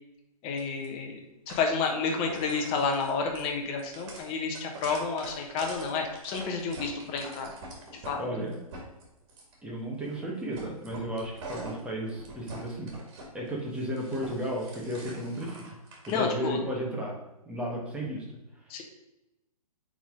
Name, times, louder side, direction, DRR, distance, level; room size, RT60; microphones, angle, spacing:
voice 1, 0.4-1.2 1.5-7.5 8.1-8.2 16.1-16.6 18.7-18.8, left 4 dB, 30° left, 3 dB, 1.3 m, -30 dB
sound 1, 0.6-0.9 1.5-1.9 2.2-8.2 8.5-9.5 10.0-10.3 10.5-13.3 13.6-16.1, right 2 dB, 40° right, 2.3 m, -44 dB
voice 2, 8.2-8.7 9.6-12.9 13.3-15.8 16.1-17.1 17.4-18.2 18.8-18.9, right 1 dB, 5° right, -3 dB, 1.6 m, -34 dB
8.8 x 3.9 x 3.9 m, 0.96 s
figure-of-eight pair, 120°, 19 cm